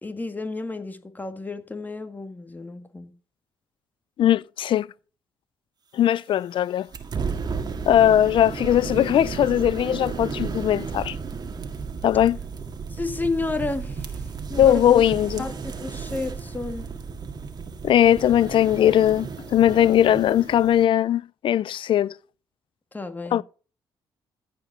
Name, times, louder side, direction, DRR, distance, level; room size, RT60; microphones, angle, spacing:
voice 1, 0.0-3.1 12.9-15.0 15.4-16.9 22.9-23.4, left 3 dB, 20° left, 1.8 m, -31 dB
voice 2, 4.2-4.9 5.9-6.9 7.9-11.2 12.0-12.4 14.6-15.4 17.8-22.1 23.3-23.4, left 11 dB, 60° left, 0.4 m, -19 dB
sound 1, 6.9-20.9, right 5 dB, 45° right, 1.8 m, -33 dB
14.0 x 5.2 x 6.6 m
supercardioid pair, 65°, 10 cm